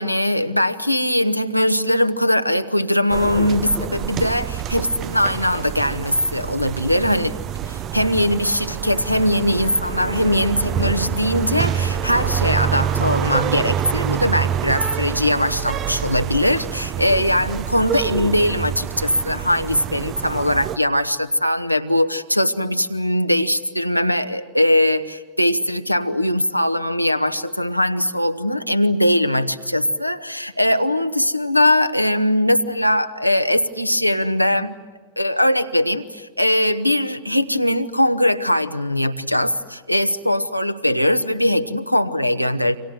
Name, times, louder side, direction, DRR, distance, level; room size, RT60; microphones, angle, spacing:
voice 1, 0.0-7.4 7.7-34.7 35.2-42.8, left 1 dB, 90° left, 9 dB, 1.2 m, -20 dB
sound 1, 3.1-20.8, right 10 dB, 35° right, 0.7 m, -26 dB
sound 2, 8.8-16.3, left 9 dB, 60° left, 1.3 m, -39 dB
29.0 x 26.0 x 7.7 m, 1.5 s
figure-of-eight pair, 90°, 0 cm